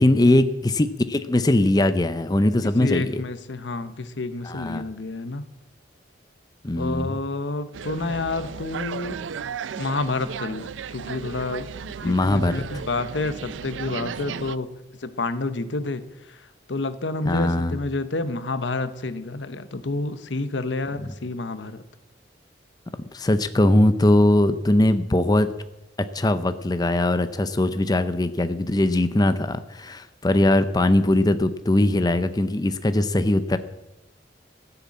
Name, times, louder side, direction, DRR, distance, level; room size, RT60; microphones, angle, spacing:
voice 1, 0.0-3.1 4.4-4.8 6.6-7.2 12.0-12.5 17.2-17.8 23.1-25.5 26.1-33.6, left 1 dB, 20° left, 11 dB, 0.5 m, -20 dB
voice 2, 2.8-5.4 6.7-9.2 9.7-11.7 12.0-14.7 15.0-21.8, left 3 dB, 75° left, 12 dB, 0.9 m, -29 dB
sound 1, 7.7-14.6, right 6 dB, 90° right, 0.4 m, -35 dB
15.5 x 6.9 x 8.5 m, 0.98 s
head